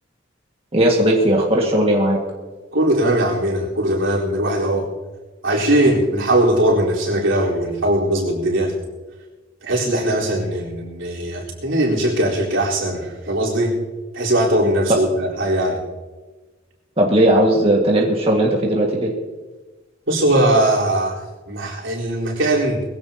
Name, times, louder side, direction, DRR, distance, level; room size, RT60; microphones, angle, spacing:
voice 1, 0.7-2.2 14.9-15.0 17.0-19.1, right 1 dB, 30° right, -2 dB, 1.8 m, -17 dB
voice 2, 2.7-4.9 5.4-8.7 9.6-13.8 14.1-15.8 20.1-22.8, right 1 dB, 80° right, -4 dB, 4.2 m, -20 dB
21.0 x 16.0 x 2.9 m, 1.3 s
head